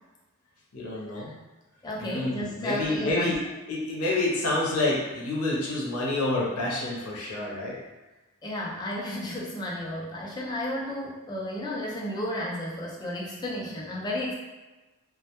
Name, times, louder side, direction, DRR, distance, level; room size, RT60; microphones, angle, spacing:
voice 1, 0.7-1.3 2.0-3.3 3.7-7.8, left 2 dB, 85° left, -4 dB, 0.6 m, -28 dB
voice 2, 1.8-3.4 8.4-14.3, left 1 dB, 20° left, -4 dB, 0.4 m, -32 dB
2.1 x 2.1 x 2.8 m, 1.1 s
head